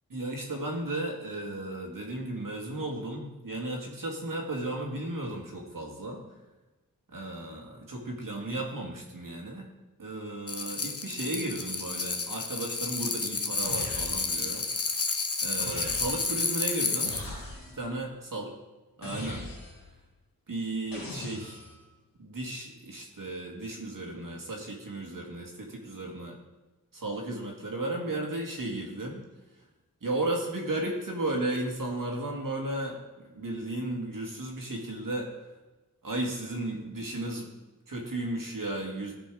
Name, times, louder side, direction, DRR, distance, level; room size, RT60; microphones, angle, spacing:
voice 1, 0.1-6.2 7.1-9.7 10.0-14.6 15.4-17.1 17.7-18.5 19.0-19.4 20.5-21.6 22.2-26.4 26.9-29.2 30.0-33.0 33.3-35.3 36.0-37.5 37.9-39.1, right 2 dB, 70° right, 0 dB, 2.2 m, -34 dB
sound 1, 10.5-17.2, left 4 dB, 45° left, 1.0 m, -31 dB
sound 2, 13.6-14.6 15.6-16.5 17.1-17.9 19.0-19.9 20.9-21.8, left 2 dB, 85° left, 2.4 m, -40 dB
14.5 x 5.2 x 4.9 m, 1.1 s
wide cardioid pair, 65°, 34 cm